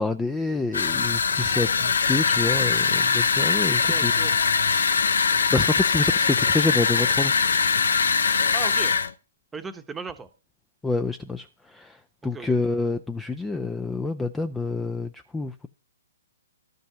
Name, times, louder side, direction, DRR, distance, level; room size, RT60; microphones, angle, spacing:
voice 1, 0.0-1.7 2.1-4.1 5.5-7.3 10.8-11.4 12.2-15.1 15.3-15.7, left 3 dB, 10° left, 0.5 m, -27 dB
sound 1, 0.7-9.1, left 5 dB, 70° left, 0.6 m, -22 dB
voice 2, 3.9-4.4 8.5-9.0 9.5-10.3 12.2-12.6, right 5 dB, 10° right, 1.0 m, -36 dB
12.5 x 5.3 x 6.2 m
figure-of-eight pair, 125°, 0 cm